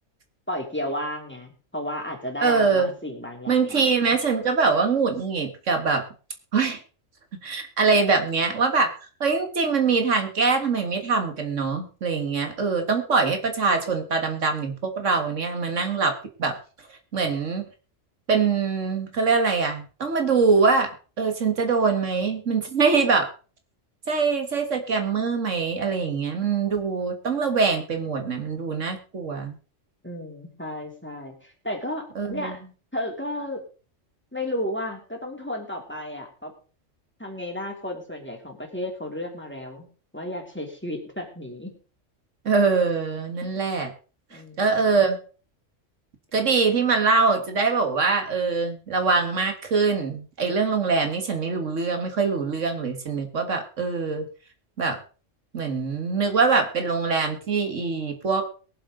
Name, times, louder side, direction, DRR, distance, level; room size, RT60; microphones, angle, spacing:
voice 1, 0.5-4.2 30.0-32.6 32.9-33.6 34.3-36.5 37.2-39.9 40.1-41.7 43.4-43.5 44.3-44.7, left 1 dB, 10° left, 1 dB, 3.0 m, -33 dB
voice 2, 2.4-2.9 3.5-6.1 6.5-6.8 7.4-8.9 9.2-16.6 17.1-17.6 18.3-20.9 21.2-23.3 24.1-29.6 32.2-32.6 42.5-43.9 44.3-45.2 46.3-54.3 54.8-55.0 55.5-58.4, right 4 dB, 70° right, 6 dB, 2.0 m, -23 dB
22.5 x 7.7 x 3.8 m, 0.37 s
omnidirectional pair, 1.3 m